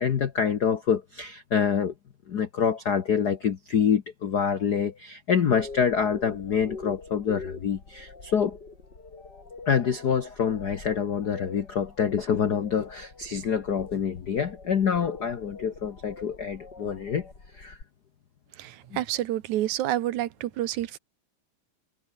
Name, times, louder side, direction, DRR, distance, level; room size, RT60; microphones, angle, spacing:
voice 1, 0.0-1.9 2.3-8.6 9.7-17.3 17.5-17.8 18.9-19.0, left 7 dB, 80° left, 0.9 m, -26 dB
sound 1, 5.5-17.8, left 3 dB, 30° left, 4.3 m, -44 dB
voice 2, 18.6-21.0, right 13 dB, 70° right, 2.3 m, -29 dB
omnidirectional pair, 3.6 m